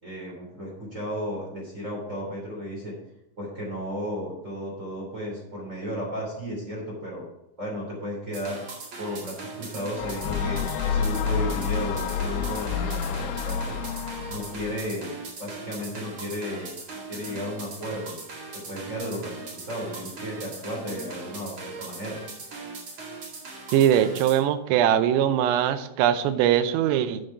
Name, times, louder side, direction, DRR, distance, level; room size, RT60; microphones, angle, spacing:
voice 1, 0.0-2.9 3.4-7.2 7.6-8.6 9.0-13.6 14.3-15.1 15.4-16.7 17.1-18.2 18.5-22.2, equal, 20° right, -4 dB, 2.6 m, -34 dB
sound 1, 8.3-24.4, right 3 dB, 60° right, 1.3 m, -40 dB
sound 2, 10.0-14.9, left 6 dB, 80° left, 2.9 m, -29 dB
voice 2, 23.7-27.2, right 10 dB, 85° right, 10 dB, 3.3 m, -21 dB
8.6 x 7.7 x 4.8 m, 0.85 s
omnidirectional pair, 5.9 m